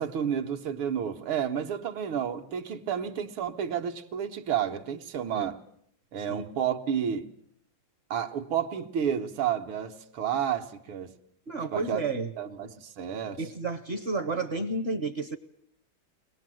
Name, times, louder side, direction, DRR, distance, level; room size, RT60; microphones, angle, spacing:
voice 1, 0.0-5.6 6.1-7.3 8.1-11.1 11.7-12.0 12.4-13.4, right 8 dB, 75° right, 2.0 m, -31 dB
voice 2, 11.5-12.3 13.4-15.4, right 3 dB, 40° right, 0.9 m, -31 dB
23.0 x 20.0 x 7.6 m
omnidirectional pair, 2.3 m